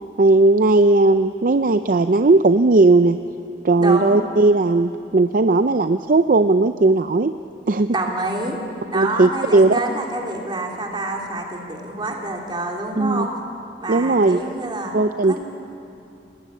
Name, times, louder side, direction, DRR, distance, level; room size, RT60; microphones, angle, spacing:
voice 1, 0.2-3.2 3.6-7.3 7.7-7.9 8.9-9.7 13.0-13.3 13.9-14.4 14.9-15.4, right 2 dB, 50° right, 9 dB, 0.5 m, -16 dB
voice 2, 3.8-4.2 7.9-8.6 8.9-13.3 13.8-14.9 15.2-15.4, right 2 dB, 25° right, 0 dB, 3.3 m, -27 dB
29.5 x 19.0 x 8.4 m, 2.6 s
head